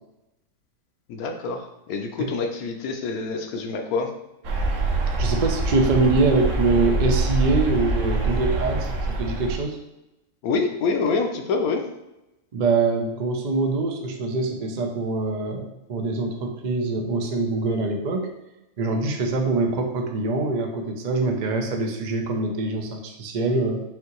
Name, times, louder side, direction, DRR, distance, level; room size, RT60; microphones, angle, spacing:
voice 1, 1.1-4.1 10.4-11.8, left 4 dB, 70° left, 4 dB, 1.1 m, -26 dB
sound 1, 4.4-9.6, right 2 dB, 60° right, 1.0 m, -24 dB
voice 2, 5.2-9.8 12.5-18.3 18.8-23.8, right 3 dB, 75° right, 3 dB, 0.4 m, -24 dB
5.4 x 2.8 x 3.0 m, 0.95 s
omnidirectional pair, 1.7 m